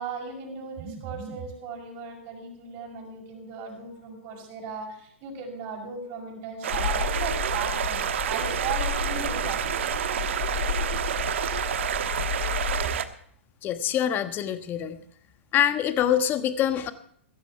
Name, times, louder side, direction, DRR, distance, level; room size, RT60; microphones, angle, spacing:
voice 1, 0.0-9.8, right 5 dB, 40° right, -2 dB, 6.8 m, -37 dB
sound 1, 6.6-13.0, right 9 dB, 70° right, 1.2 m, -29 dB
sound 2, 6.7-12.8, left 8 dB, 60° left, 1.7 m, -32 dB
voice 2, 13.6-15.0 15.5-16.9, left 10 dB, 30° left, 10 dB, 1.4 m, -25 dB
16.0 x 14.5 x 4.5 m, 0.62 s
hypercardioid pair, 120°, 7 cm